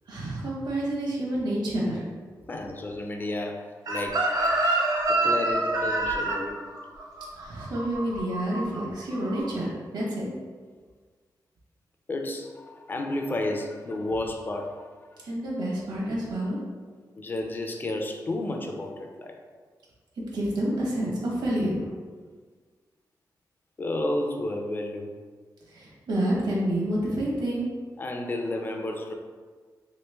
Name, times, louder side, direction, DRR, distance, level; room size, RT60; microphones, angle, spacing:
voice 1, 0.1-2.0 4.7-4.9 7.3-10.3 15.2-16.6 20.3-21.8 25.7-27.7, right 1 dB, 90° right, -5 dB, 1.0 m, -29 dB
voice 2, 2.5-4.5 5.1-6.6 12.1-14.8 15.5-15.9 17.1-19.3 23.8-25.1 28.0-29.1, left 1 dB, 25° left, 3 dB, 0.4 m, -32 dB
Chicken rooster, 3.9-8.8 9.1-9.4, right 2 dB, 65° right, 0.6 m, -26 dB
3.1 x 2.9 x 3.3 m, 1.5 s
wide cardioid pair, 145°, 7 cm